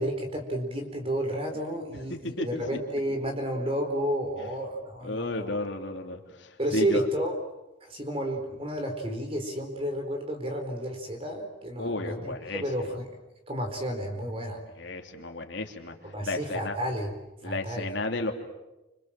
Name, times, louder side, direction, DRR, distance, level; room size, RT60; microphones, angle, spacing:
voice 1, 0.0-5.6 6.6-7.3 7.8-12.2 12.5-13.0 13.5-14.6 16.0-17.1 17.4-17.9, equal, 30° right, 4 dB, 4.4 m, -31 dB
voice 2, 1.9-2.8 5.0-7.1 11.8-12.6 14.7-16.8 17.4-18.3, left 2 dB, 65° left, 4 dB, 2.9 m, -33 dB
29.0 x 26.5 x 7.5 m, 1.0 s
head